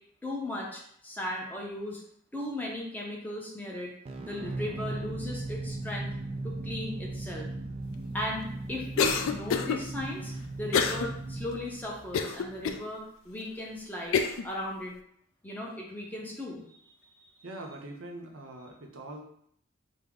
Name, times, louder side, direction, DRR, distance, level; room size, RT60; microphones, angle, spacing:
voice 1, 0.2-2.0 2.3-3.9 4.2-6.1 6.4-7.5 8.1-10.3 10.6-14.2 14.4-14.9 15.4-16.9, left 1 dB, 10° left, -2 dB, 0.6 m, -37 dB
sound 1, 4.0-12.7, right 2 dB, 30° right, 0.3 m, -38 dB
Cough, 9.0-9.8 10.7-11.1 11.5-11.6 12.1-12.8 13.4-13.5 14.1-14.5, left 6 dB, 75° left, 0.3 m, -27 dB
voice 2, 17.4-19.2, right 1 dB, 75° right, 1 dB, 0.7 m, -42 dB
3.4 x 2.0 x 3.5 m, 0.67 s
head